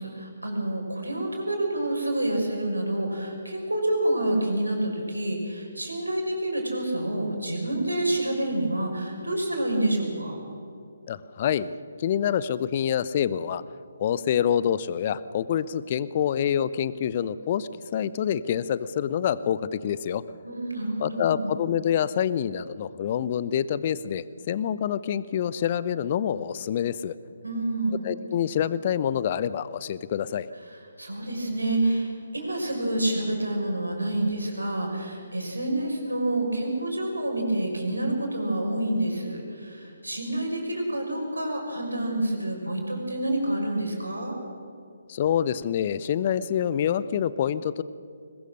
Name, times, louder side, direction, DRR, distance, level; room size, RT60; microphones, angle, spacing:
voice 1, 0.0-10.4 20.4-21.5 27.4-28.0 30.6-44.4, right 1 dB, 80° right, 1 dB, 6.0 m, -28 dB
voice 2, 11.1-13.6 14.0-20.2 21.0-27.1 28.0-30.5 45.1-47.8, left 9 dB, 35° left, 17 dB, 0.8 m, -26 dB
22.0 x 21.0 x 6.5 m, 2.5 s
figure-of-eight pair, 140°, 0 cm